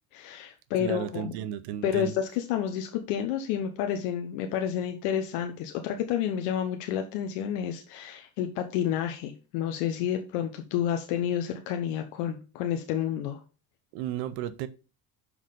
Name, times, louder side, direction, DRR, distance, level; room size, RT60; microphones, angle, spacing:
voice 1, 0.1-1.3 1.8-13.4, left 9 dB, 80° left, 0.9 m, -30 dB
voice 2, 0.8-2.1 13.9-14.7, right 11 dB, 80° right, 0.8 m, -33 dB
5.6 x 4.8 x 5.2 m
hypercardioid pair, 65°, 45 cm